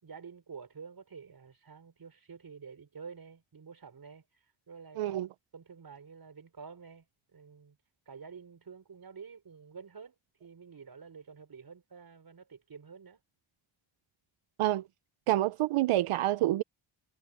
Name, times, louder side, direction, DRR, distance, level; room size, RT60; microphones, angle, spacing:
voice 1, 0.0-4.3 4.7-5.2 5.5-7.1 7.3-7.8 8.1-10.2 10.4-13.2, right 5 dB, 45° right, 5.6 m, -49 dB
voice 2, 5.0-5.3 14.6-14.9 15.3-16.6, right 15 dB, 85° right, 0.6 m, -27 dB
wide cardioid pair, 125°, 50 cm